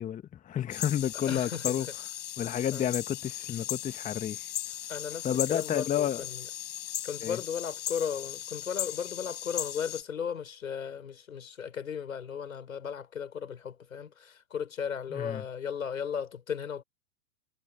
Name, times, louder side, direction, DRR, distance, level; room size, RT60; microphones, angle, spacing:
voice 1, 0.0-1.9 2.4-4.5 5.2-6.2 7.2-7.4 15.1-15.4, left 10 dB, 20° left, 1.3 m, -30 dB
sound 1, 0.7-10.0, left 12 dB, 60° left, 6.7 m, -37 dB
voice 2, 1.3-1.7 2.7-2.9 4.9-6.5 7.0-16.8, left 7 dB, 75° left, 5.3 m, -36 dB
figure-of-eight pair, 105°, 41 cm